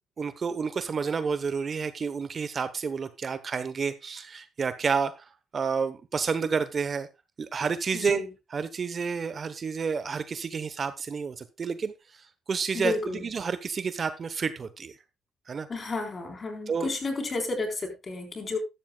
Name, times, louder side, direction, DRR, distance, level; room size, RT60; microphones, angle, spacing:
voice 1, 0.2-5.1 5.5-7.1 7.4-8.2 8.5-12.9 13.3-14.9 15.5-15.7 16.7-16.9, right 5 dB, 45° right, 13 dB, 0.9 m, -30 dB
voice 2, 7.9-8.3 12.7-13.2 15.7-18.6, left 3 dB, 35° left, 4 dB, 3.9 m, -32 dB
12.5 x 12.5 x 2.3 m, 0.23 s
cardioid pair, 90°, 0 cm